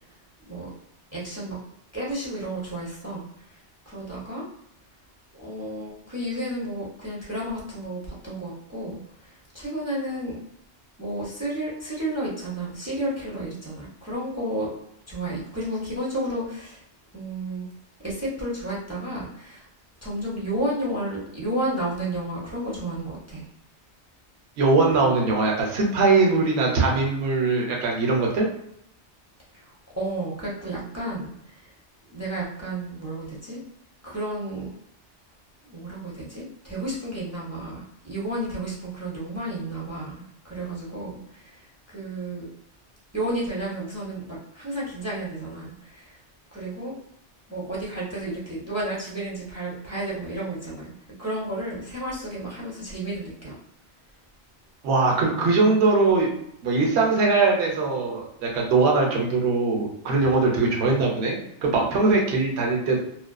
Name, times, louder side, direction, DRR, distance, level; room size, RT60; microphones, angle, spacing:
voice 1, 1.1-1.6 1.9-3.6 3.9-4.4 5.4-10.4 11.0-14.7 15.1-16.8 17.1-17.7 18.0-19.7 20.0-23.4 29.5-31.7 32.1-33.6 34.0-34.7 35.6-42.5 43.1-46.2 46.5-46.9 47.5-53.6, right 1 dB, 20° right, -5 dB, 0.4 m, -32 dB
voice 2, 24.6-28.5 54.8-56.3 56.6-63.0, right 3 dB, 70° right, -1 dB, 0.9 m, -21 dB
2.5 x 2.2 x 2.2 m, 0.76 s
omnidirectional pair, 1.2 m